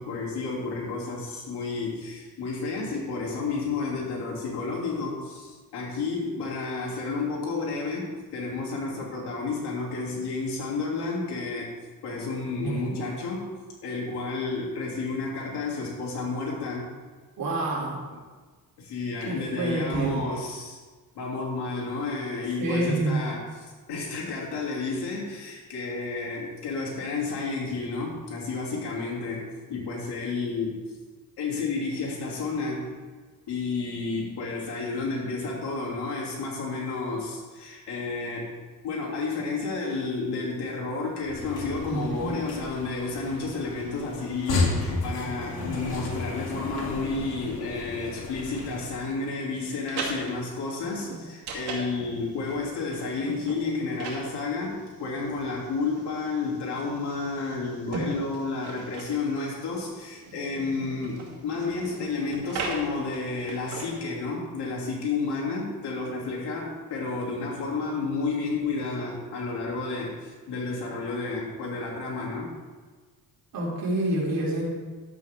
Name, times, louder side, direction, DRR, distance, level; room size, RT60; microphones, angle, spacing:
voice 1, 0.0-11.7 12.0-13.5 13.8-16.9 18.8-20.8 21.1-30.8 31.4-32.9 33.5-38.5 38.8-72.5, left 3 dB, 85° left, -3 dB, 2.9 m, -31 dB
voice 2, 12.6-13.0 17.4-18.0 19.2-20.2 22.6-23.1 41.9-42.4 73.5-74.6, right 1 dB, 60° right, -3 dB, 3.3 m, -28 dB
sound 1, 41.2-49.1, left 3 dB, 65° left, 2.8 m, -33 dB
sound 2, 49.6-64.2, right 4 dB, 90° right, 2.3 m, -39 dB
11.5 x 8.3 x 3.6 m, 1.4 s
cardioid pair, 115°, 39 cm